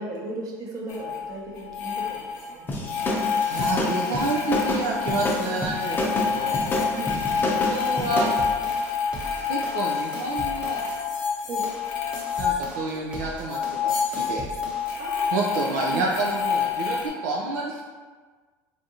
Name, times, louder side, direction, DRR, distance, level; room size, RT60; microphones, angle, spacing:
voice 1, 0.0-2.2 2.5-3.1 6.9-7.2 10.5-10.6 11.4-11.6 15.0-16.3, right 2 dB, 50° right, -2 dB, 0.8 m, -36 dB
sound 1, 0.9-1.2 1.6-2.5 2.8-13.2 13.4-17.1, left 6 dB, 70° left, 0.7 m, -28 dB
sound 2, 2.7-8.4, left 1 dB, 25° left, 0.6 m, -28 dB
voice 2, 3.4-6.6 7.4-8.3 9.4-10.8 12.4-14.5 15.3-17.8, right 3 dB, 85° right, -2 dB, 0.4 m, -29 dB
sound 3, 7.1-11.0 11.4-15.0, right 1 dB, 10° right, 0.7 m, -40 dB
3.4 x 2.5 x 2.7 m, 1.5 s
supercardioid pair, 95°, 8 cm